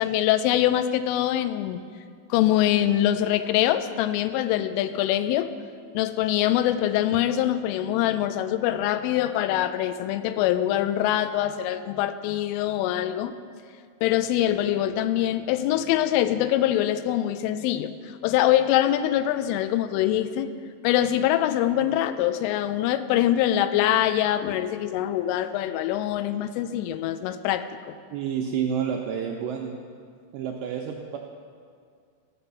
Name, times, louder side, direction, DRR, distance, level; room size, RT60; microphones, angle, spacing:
voice 1, 0.0-1.8 2.3-5.5 5.9-13.3 14.0-17.9 18.2-20.5 20.8-27.9, left 12 dB, 85° left, 12 dB, 3.1 m, -24 dB
voice 2, 28.1-29.8 30.3-31.2, right 8 dB, 85° right, 1 dB, 2.5 m, -29 dB
15.0 x 6.0 x 7.0 m, 2.2 s
omnidirectional pair, 5.7 m